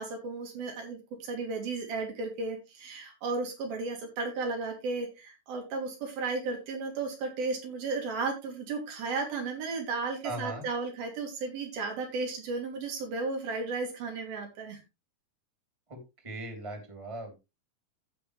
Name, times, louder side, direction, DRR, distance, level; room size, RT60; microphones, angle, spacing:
voice 1, 0.0-14.8, right 3 dB, 80° right, 2 dB, 4.6 m, -34 dB
voice 2, 10.2-10.7 15.9-17.3, right 1 dB, 10° right, 4 dB, 2.7 m, -39 dB
15.0 x 6.7 x 3.2 m, 0.25 s
omnidirectional pair, 4.2 m